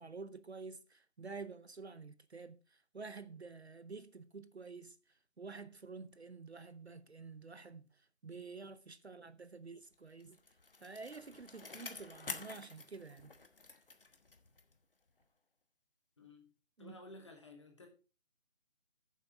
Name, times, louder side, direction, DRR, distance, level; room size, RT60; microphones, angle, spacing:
voice 1, 0.0-2.6 2.9-5.0 5.4-7.9 8.2-10.4 10.8-13.3 16.8-16.9, right 4 dB, 55° right, 0.7 m, -49 dB
Bicycle, 9.9-14.8 15.2-15.3, left 3 dB, 45° left, 1.1 m, -49 dB
voice 2, 16.2-16.5 16.8-17.9, left 2 dB, 20° left, 1.4 m, -54 dB
9.4 x 7.2 x 4.8 m
figure-of-eight pair, 160°, 39 cm